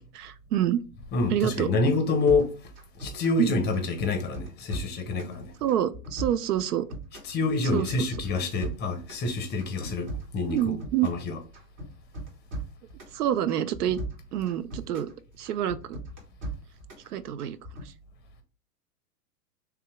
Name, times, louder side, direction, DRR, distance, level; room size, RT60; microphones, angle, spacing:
voice 1, 0.1-0.8 1.3-1.7 3.4-3.6 5.6-6.9 7.7-8.1 10.5-11.1 13.1-14.0 14.3-15.1 15.4-16.0 17.1-17.6, right 11 dB, 70° right, 0.6 m, -27 dB
voice 2, 1.1-2.5 3.0-5.5 7.2-10.1 10.3-10.8 11.0-11.3, left 3 dB, 20° left, 0.7 m, -27 dB
sound 1, 2.3-3.4 3.7-5.4 5.7-7.3 7.6-9.3 9.6-11.2 11.5-13.2 13.5-15.1 15.4-17.1 17.4-17.9, right 2 dB, 40° right, 1.8 m, -38 dB
3.4 x 2.8 x 3.4 m
hypercardioid pair, 105°, 49 cm